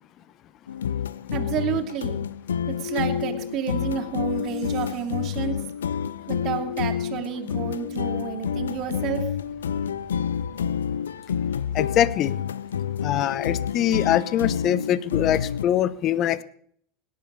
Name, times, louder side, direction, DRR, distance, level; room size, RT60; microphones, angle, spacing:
sound 1, 0.7-15.6, left 8 dB, 90° left, 0.5 m, -28 dB
voice 1, 1.3-2.2 2.7-5.6 6.3-9.3, right 8 dB, 45° right, 3 dB, 2.9 m, -30 dB
voice 2, 11.7-12.4 13.0-16.4, left 11 dB, 45° left, 19 dB, 1.0 m, -23 dB
18.0 x 10.5 x 6.8 m, 0.64 s
hypercardioid pair, 95°, 0 cm